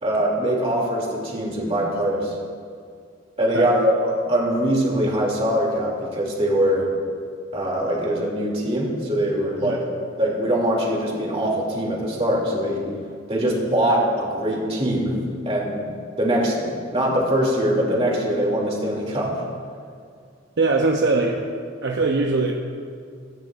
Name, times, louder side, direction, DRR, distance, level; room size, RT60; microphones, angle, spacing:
voice 1, 0.0-2.3 3.4-6.9 7.5-9.8 10.2-12.8 13.3-15.8 16.2-19.3, right 1 dB, 30° right, -3 dB, 2.8 m, -22 dB
voice 2, 20.6-21.5 21.8-22.5, right 3 dB, 60° right, 1 dB, 0.8 m, -21 dB
23.5 x 10.5 x 2.6 m, 2.2 s
head